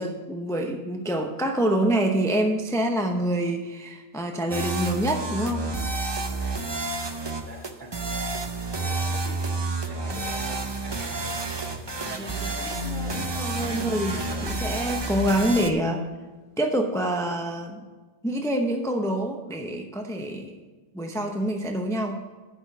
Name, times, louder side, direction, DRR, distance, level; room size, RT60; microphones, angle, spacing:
voice 1, 0.0-5.7 12.0-16.0 16.6-17.8 18.2-20.6 20.9-22.2, right 1 dB, 5° left, 3 dB, 0.7 m, -26 dB
sound 1, 4.5-15.7, right 3 dB, 30° right, 0.7 m, -30 dB
voice 2, 7.5-7.9 8.8-11.5 13.5-13.9, right 1 dB, 50° right, -5 dB, 2.9 m, -44 dB
sound 2, 12.7-16.6, left 14 dB, 60° left, 1.3 m, -40 dB
11.0 x 6.0 x 5.9 m, 1.3 s
omnidirectional pair, 1.0 m